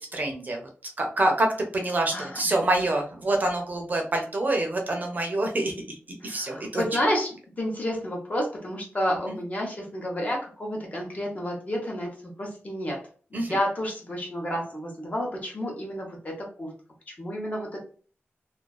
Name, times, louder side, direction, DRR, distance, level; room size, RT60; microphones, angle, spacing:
voice 1, 0.1-0.6 1.0-1.5 1.7-6.8 13.3-13.5, right 2 dB, 40° right, 2 dB, 0.5 m, -26 dB
voice 2, 2.1-2.6 6.2-16.7 17.1-17.8, equal, 35° left, -1 dB, 0.8 m, -30 dB
2.4 x 2.3 x 2.3 m, 0.42 s
wide cardioid pair, 155°, 5 cm